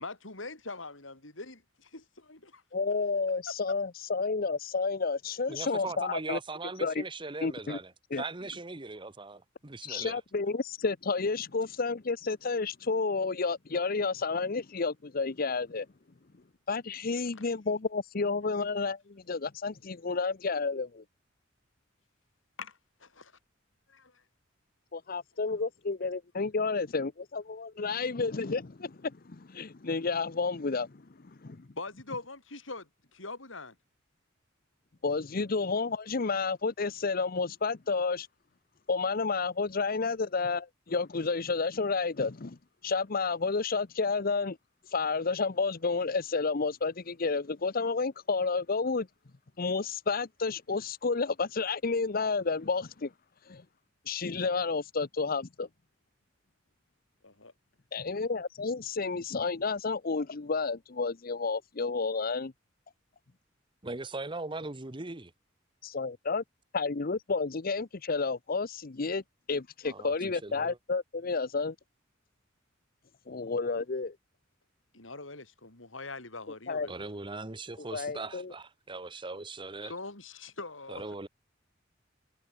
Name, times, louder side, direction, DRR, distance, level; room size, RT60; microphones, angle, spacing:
voice 1, 0.0-2.6 3.5-3.6 17.3-17.4 22.6-23.3 23.9-24.1 31.8-33.8 57.2-57.5 74.9-77.0 79.9-81.0, left 3 dB, 85° left, 5.6 m, -43 dB
voice 2, 2.7-6.4 6.8-7.0 7.4-7.8 8.1-8.2 9.8-15.9 16.7-21.0 24.9-30.9 31.4-31.7 35.0-38.3 38.9-42.6 42.8-44.6 44.9-49.1 49.6-53.1 53.4-53.6 54.1-55.7 57.9-62.5 65.8-66.4 66.7-69.2 69.5-71.7 73.3-74.1 76.7-76.9 77.9-78.5, left 4 dB, 50° left, 0.8 m, -31 dB
voice 3, 5.5-10.2 63.8-65.3 69.8-70.8 76.9-79.9 80.9-81.3, right 3 dB, 25° right, 1.2 m, -40 dB
head